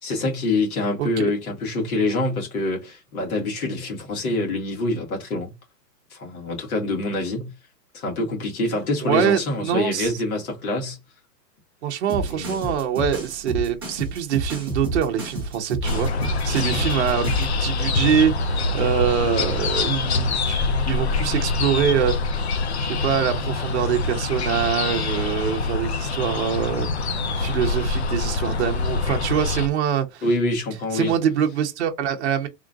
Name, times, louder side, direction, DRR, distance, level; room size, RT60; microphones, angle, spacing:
voice 1, 0.0-5.5 6.1-7.5 7.9-11.0 12.3-12.8 16.1-16.3 30.2-31.1, left 2 dB, 55° left, 1.9 m, -26 dB
voice 2, 9.0-10.1 11.8-22.1 22.8-26.9 27.3-30.2 30.9-32.5, right 8 dB, 40° right, 0.8 m, -24 dB
sound 1, 12.1-17.5, right 2 dB, 15° right, 0.5 m, -30 dB
sound 2, 15.8-29.7, left 3 dB, 40° left, 0.5 m, -25 dB
3.7 x 2.4 x 3.6 m
hypercardioid pair, 170°, 50 cm